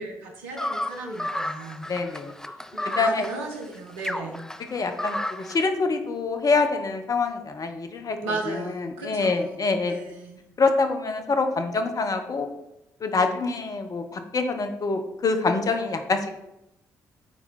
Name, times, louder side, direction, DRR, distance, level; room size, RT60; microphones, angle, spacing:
voice 1, 0.0-1.9 2.7-4.4 8.2-9.6 9.8-10.4, right 3 dB, 75° right, 2 dB, 1.2 m, -35 dB
sound 1, 0.6-5.6, left 1 dB, 5° left, 0.5 m, -32 dB
voice 2, 1.9-2.3 2.8-3.3 4.7-8.2 8.5-9.9 10.6-12.5 13.0-16.3, left 3 dB, 45° left, 6 dB, 1.1 m, -25 dB
9.2 x 4.5 x 4.2 m, 0.89 s
figure-of-eight pair, 40°, 9 cm